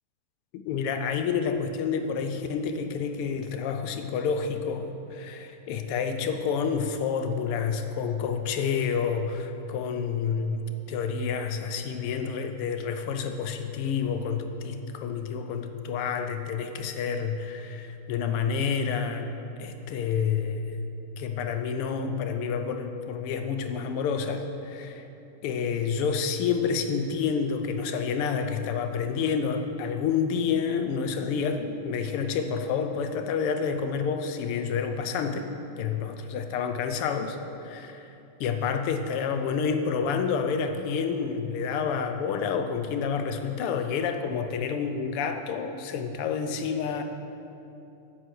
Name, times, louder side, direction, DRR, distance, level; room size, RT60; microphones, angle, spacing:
voice 1, 0.5-19.3 19.6-20.7 21.2-25.1 25.4-37.4 37.6-38.1 38.4-47.0, left 6 dB, 85° left, 7 dB, 1.7 m, -29 dB
10.0 x 8.0 x 6.3 m, 2.8 s
omnidirectional pair, 2.4 m